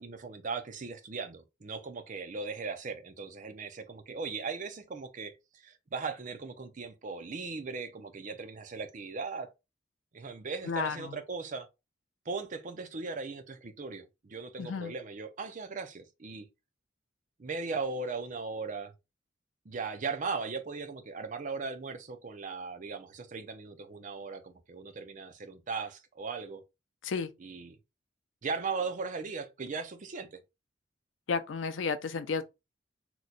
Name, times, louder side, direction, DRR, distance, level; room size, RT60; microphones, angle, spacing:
voice 1, 0.0-9.5 10.1-11.7 12.3-16.5 17.4-18.9 19.7-26.6 27.4-27.8 28.4-30.4, right 4 dB, 40° right, 0.5 m, -38 dB
voice 2, 10.6-11.2 14.6-14.9 27.0-27.3 31.3-32.4, left 5 dB, 80° left, 0.5 m, -32 dB
2.9 x 2.1 x 3.8 m
head